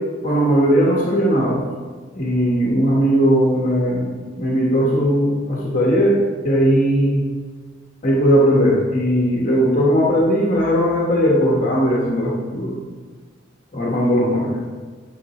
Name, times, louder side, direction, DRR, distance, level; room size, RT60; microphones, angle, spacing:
voice 1, 0.2-1.6 2.1-7.3 8.0-12.8 13.7-14.6, equal, 40° left, -3 dB, 1.2 m, -18 dB
9.5 x 6.6 x 3.0 m, 1.5 s
head